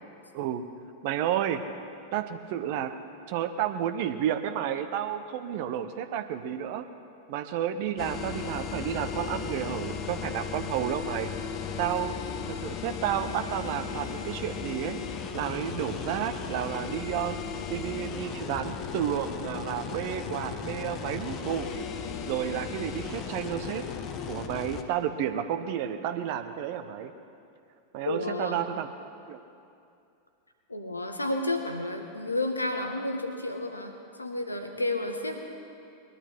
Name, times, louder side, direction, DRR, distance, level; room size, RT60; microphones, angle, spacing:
voice 1, 1.0-1.6 2.1-2.9 3.3-6.9 7.3-11.3 11.8-12.2 12.4-15.0 15.3-17.4 17.7-21.8 22.3-23.9 24.3-27.1 27.9-28.9 29.3-29.4, right 10 dB, 50° right, 9 dB, 0.8 m, -31 dB
sound 1, 8.0-24.8, left 6 dB, 35° left, 1.0 m, -36 dB
voice 2, 28.0-28.6 30.7-35.4, left 2 dB, 80° left, 5 dB, 1.3 m, -31 dB
21.0 x 12.0 x 4.6 m, 2.5 s
figure-of-eight pair, 90°, 0 cm